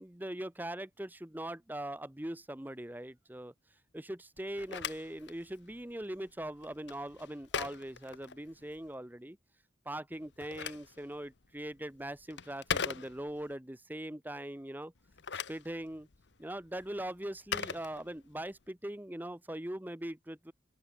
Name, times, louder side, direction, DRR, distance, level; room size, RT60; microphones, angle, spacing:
voice 1, 0.0-3.5 3.9-9.4 9.9-14.9 15.5-16.1 16.4-20.5, right 1 dB, 10° right, 0.8 m, -41 dB
Telephone, 4.4-8.9 10.1-13.5 15.0-18.6, left 6 dB, 60° left, 0.9 m, -41 dB
open air
head